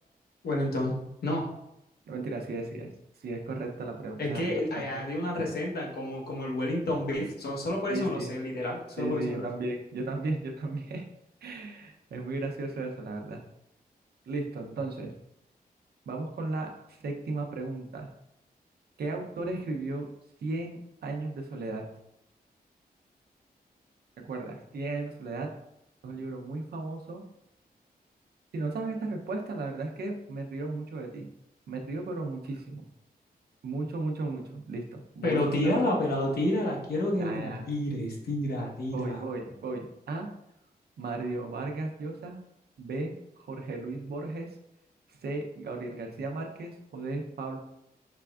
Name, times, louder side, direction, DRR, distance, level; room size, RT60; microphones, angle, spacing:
voice 1, 0.4-1.5 4.2-9.5 35.2-39.2, left 1 dB, 85° left, -1 dB, 1.2 m, -30 dB
voice 2, 2.1-2.9 3.2-5.0 7.9-8.3 9.0-11.0 11.4-13.4 14.3-15.1 16.1-18.1 19.0-20.1 20.4-21.8 24.2-25.5 26.0-27.2 28.5-31.3 31.7-32.8 33.6-35.7 37.2-37.6 38.9-40.3 41.0-42.4 42.8-44.5 45.1-47.6, right 2 dB, 85° right, 2 dB, 0.7 m, -35 dB
5.9 x 3.4 x 2.4 m, 0.82 s
wide cardioid pair, 125°, 16 cm